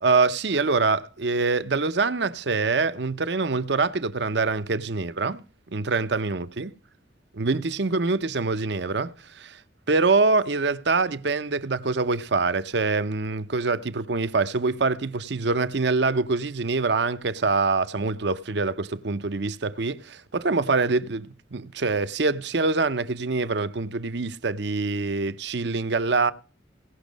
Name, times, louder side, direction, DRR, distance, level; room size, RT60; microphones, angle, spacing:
voice 1, 0.0-5.5 5.7-6.7 7.3-9.6 9.9-26.3, right 3 dB, 65° right, 0.7 m, -25 dB
17.5 x 6.1 x 5.2 m
head